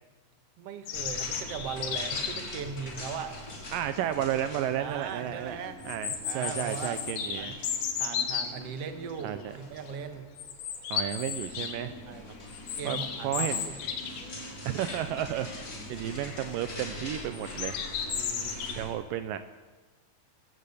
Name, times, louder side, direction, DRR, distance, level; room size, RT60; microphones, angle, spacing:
voice 1, 0.6-3.3 4.8-5.8 6.2-7.0 7.4-7.6 8.0-10.3 12.1-12.4 12.8-13.8 18.0-18.8, right 6 dB, 55° right, 9 dB, 1.8 m, -39 dB
sound 1, 0.9-2.6 4.1-4.2 4.6-4.7 5.8-8.5 9.2-9.5 9.8-9.9 10.4-11.7 12.1-14.4 14.7-14.8 15.2-15.6 16.1-16.5 17.3-18.7, left 7 dB, 60° left, 3.2 m, -34 dB
sound 2, 0.9-18.9, left 1 dB, 20° left, 3.6 m, -43 dB
voice 2, 3.7-5.6 5.8-7.5 9.2-9.6 10.9-12.0 12.9-13.0 13.2-13.7 14.6-15.5 15.9-17.8 18.8-19.4, right 11 dB, 90° right, 10 dB, 1.9 m, -32 dB
21.5 x 15.0 x 8.5 m, 1.3 s
omnidirectional pair, 5.0 m